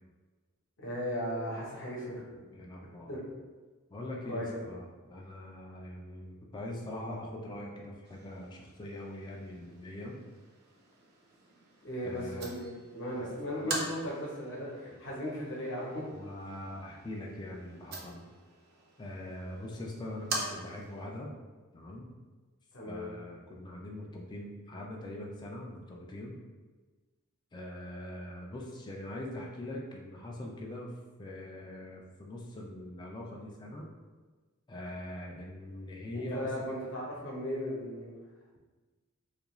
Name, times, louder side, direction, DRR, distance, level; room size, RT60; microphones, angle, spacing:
voice 1, 0.8-2.4 3.1-3.2 4.2-4.6 11.8-16.0 22.7-23.1 36.3-38.2, equal, 60° left, -4 dB, 0.8 m, -37 dB
voice 2, 2.5-3.2 3.9-10.2 12.0-12.5 13.2-13.3 13.5-13.7 14.9-15.0 16.1-18.2 19.0-21.3 21.7-22.1 22.9-26.4 27.5-30.9 31.2-33.9 34.7-36.5, left 1 dB, 20° left, -1 dB, 0.3 m, -42 dB
sound 1, 8.0-21.0, right 2 dB, 50° right, 0.4 m, -44 dB
2.4 x 2.2 x 2.9 m, 1.3 s
head